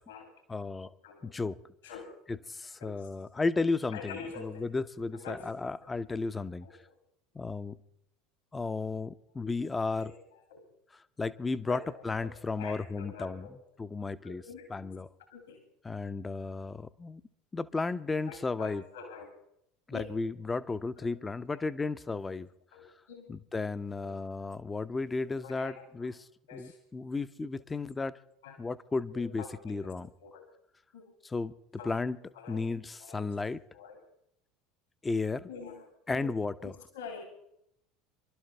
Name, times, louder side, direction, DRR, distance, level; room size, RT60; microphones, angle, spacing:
voice 1, 0.5-0.9 1.2-1.6 2.3-6.7 7.3-7.8 8.5-10.1 10.9-14.4 14.7-15.1 15.8-17.2 17.5-18.8 19.9-22.5 23.3-28.1 28.6-30.1 31.2-31.5 31.8-32.2 32.5-33.6 35.0-35.5 36.1-36.8, left 3 dB, 15° left, 14 dB, 0.7 m, -34 dB
voice 2, 1.8-2.2 2.8-3.1 3.9-4.7 5.1-5.5 6.6-6.8 10.0-10.2 10.5-10.6 11.7-13.6 14.2-14.7 15.3-15.6 18.3-19.3 19.9-20.1 22.7-23.3 24.0-24.2 25.4-26.1 26.5-26.8 28.4-28.6 29.1-29.9 30.2-30.5 30.9-31.1 31.8-31.9 32.3-32.6 33.0-33.3 33.7-34.0 35.5-36.3 36.6-37.2, left 5 dB, 65° left, 4 dB, 2.7 m, -46 dB
26.5 x 12.5 x 3.4 m, 0.73 s
figure-of-eight pair, 70°, 0 cm